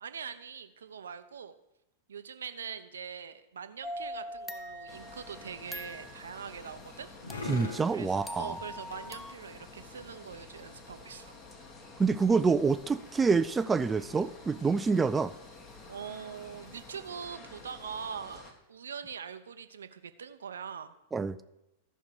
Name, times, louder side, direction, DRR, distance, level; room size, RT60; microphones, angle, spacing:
voice 1, 0.0-1.5 2.1-7.1 7.9-11.3 15.0-15.1 15.9-20.9, right 7 dB, 75° right, 10 dB, 0.6 m, -43 dB
sound 1, 3.8-6.3 7.3-9.3, left 1 dB, 5° left, 0.7 m, -43 dB
sound 2, 4.7-10.7, left 2 dB, 80° left, 1.2 m, -45 dB
sound 3, 4.9-18.5, left 3 dB, 30° left, 1.8 m, -50 dB
voice 2, 7.5-8.6 12.0-15.3 21.1-21.4, right 4 dB, 15° right, 13 dB, 0.4 m, -27 dB
14.0 x 5.5 x 4.8 m, 0.90 s
figure-of-eight pair, 95°, 0 cm